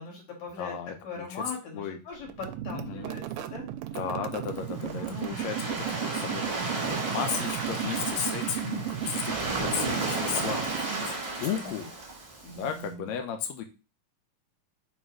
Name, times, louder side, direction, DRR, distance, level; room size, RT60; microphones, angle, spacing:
voice 1, 0.0-0.8 1.0-3.6 4.8-5.8 6.5-6.8 11.6-11.7 12.4-13.0, left 3 dB, 55° left, 0 dB, 3.3 m, -41 dB
voice 2, 0.6-1.4 1.7-2.0 2.7-3.1 3.9-11.9 12.5-13.6, left 8 dB, 80° left, 6 dB, 1.6 m, -35 dB
sound 1, 2.3-11.3, right 12 dB, 80° right, 2.3 m, -35 dB
Waves surf, 4.5-12.8, right 3 dB, 30° right, 1.2 m, -33 dB
sound 2, 11.0-11.6, left 1 dB, 30° left, 2.3 m, -52 dB
6.3 x 3.4 x 4.7 m, 0.32 s
omnidirectional pair, 4.2 m